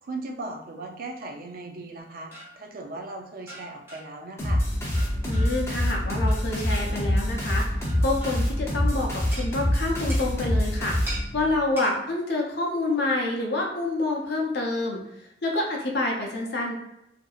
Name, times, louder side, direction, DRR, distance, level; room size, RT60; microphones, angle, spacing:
voice 1, 0.0-4.6, right 2 dB, 50° right, 3 dB, 0.4 m, -38 dB
sound 1, 2.0-2.6 3.5-4.2 4.9-5.7 6.3-7.1 7.8-8.5 9.3-9.5 10.1-10.3 11.1-11.3 11.8-12.0, right 1 dB, 15° right, 0.8 m, -41 dB
sound 2, 4.4-11.5, left 1 dB, 15° left, 0.5 m, -25 dB
voice 2, 5.2-7.6 8.0-15.0 15.4-16.7, left 2 dB, 65° left, 0 dB, 0.6 m, -27 dB
2.7 x 2.5 x 2.3 m, 0.83 s
head